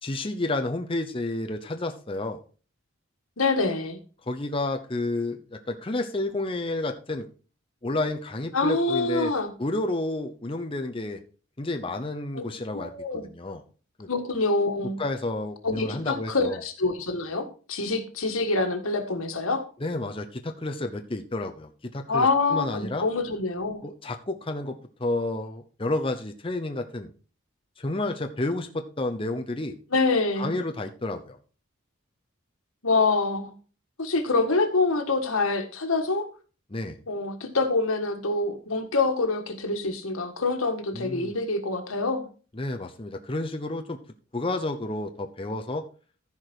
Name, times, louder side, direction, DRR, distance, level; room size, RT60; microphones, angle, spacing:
voice 1, 0.0-2.4 4.3-7.2 7.8-9.3 9.6-11.2 11.6-12.9 13.3-13.6 14.0-14.1 15.0-16.6 19.8-23.0 23.8-27.1 27.8-29.7 30.4-31.4 36.7-37.0 40.9-41.3 42.5-44.0 44.3-45.8, left 2 dB, 25° left, 0.8 m, -30 dB
voice 2, 3.4-4.0 8.5-9.5 12.7-13.3 14.1-15.0 15.6-19.6 22.1-23.8 29.9-30.6 32.8-33.5 34.0-36.3 37.1-42.3, left 3 dB, 85° left, 1.8 m, -26 dB
14.5 x 5.0 x 4.6 m
head